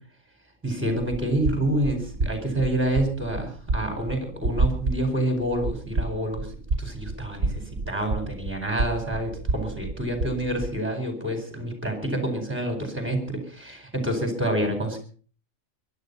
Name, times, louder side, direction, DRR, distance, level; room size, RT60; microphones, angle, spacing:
voice 1, 0.6-6.5 6.8-15.0, right 1 dB, 10° right, 5 dB, 4.8 m, -28 dB
sound 1, 0.9-10.8, right 3 dB, 45° right, 1.7 m, -30 dB
22.5 x 11.5 x 5.6 m, 0.43 s
omnidirectional pair, 1.4 m